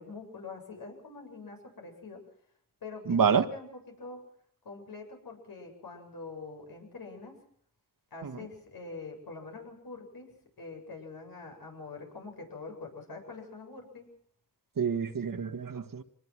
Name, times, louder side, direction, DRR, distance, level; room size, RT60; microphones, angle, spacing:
voice 1, 0.0-2.2 2.8-4.2 4.6-7.4 8.1-14.1, left 3 dB, 90° left, 2 dB, 8.0 m, -45 dB
voice 2, 3.1-3.4 8.2-8.3 14.8-16.0, right 7 dB, 70° right, 9 dB, 1.7 m, -27 dB
25.5 x 21.0 x 6.2 m, 0.63 s
wide cardioid pair, 110°, 34 cm